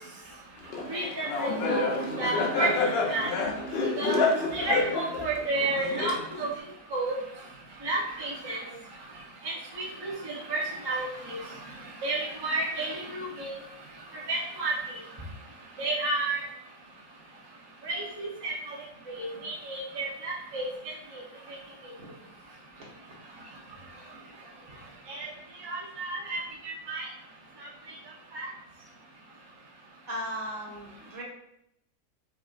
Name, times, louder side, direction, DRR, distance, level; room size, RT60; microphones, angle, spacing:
Laughter, 0.7-6.6, left 3 dB, 70° left, 0.6 m, -29 dB
voice 1, 0.9-3.3 4.0-6.5 6.9-7.2 7.8-8.7 9.4-11.6 12.0-13.5 14.3-14.7 15.8-16.5 17.8-18.8 19.1-20.7 21.1-21.2 25.1-25.3 25.6-26.4 26.6-27.1 27.9-28.0 28.3-28.5, right 2 dB, 30° right, -4 dB, 0.4 m, -31 dB
voice 2, 30.1-31.2, equal, 60° right, -4 dB, 1.4 m, -36 dB
5.6 x 2.5 x 2.4 m, 0.78 s
omnidirectional pair, 1.6 m